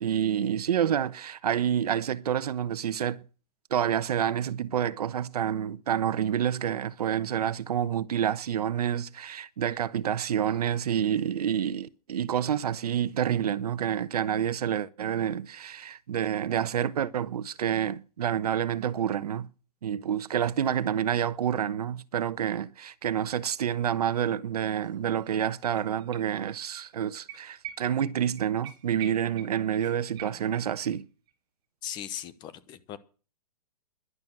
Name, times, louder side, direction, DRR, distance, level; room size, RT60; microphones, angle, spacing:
voice 1, 0.0-3.2 3.7-19.5 19.8-31.1, right 9 dB, 70° right, 1.0 m, -28 dB
sound 1, 24.8-24.9 25.2-26.6 26.8-26.9 27.3-31.0 31.3-31.4, right 11 dB, 20° right, 1.6 m, -46 dB
voice 2, 31.8-33.0, left 10 dB, 20° left, 1.0 m, -38 dB
11.5 x 10.5 x 7.7 m
hypercardioid pair, 150°, 20 cm